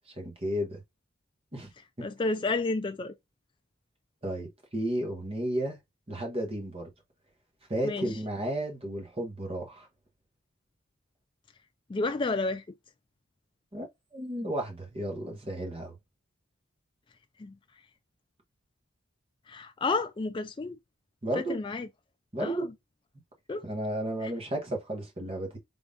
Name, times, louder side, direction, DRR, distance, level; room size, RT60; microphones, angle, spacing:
voice 1, 0.1-0.8 1.5-1.7 2.0-2.1 4.2-5.8 6.1-6.9 7.7-9.9 13.7-13.9 14.1-15.9 21.2-21.6 22.3-22.7 23.6-25.6, right 1 dB, 30° right, 1.4 m, -33 dB
voice 2, 2.0-3.1 7.8-8.1 11.9-12.6 17.4-17.5 19.5-20.8 21.4-21.9 22.4-22.7 23.5-23.7 24.2-24.3, left 3 dB, 25° left, 0.3 m, -31 dB
3.6 x 3.5 x 2.5 m
head